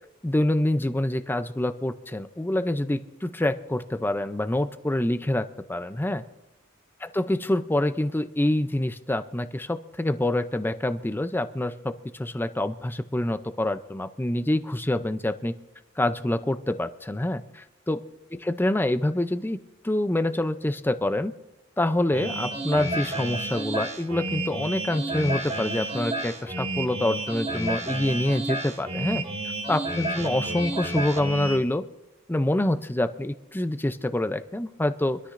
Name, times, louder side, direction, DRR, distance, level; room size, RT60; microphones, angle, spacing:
voice 1, 0.2-6.2 7.0-15.5 16.0-18.0 18.4-21.3 21.8-29.2 29.7-31.8 32.3-35.2, left 1 dB, 10° left, 11 dB, 0.5 m, -26 dB
sound 1, 22.1-31.6, right 1 dB, 30° right, 1.7 m, -31 dB
24.5 x 13.0 x 2.6 m, 0.96 s
head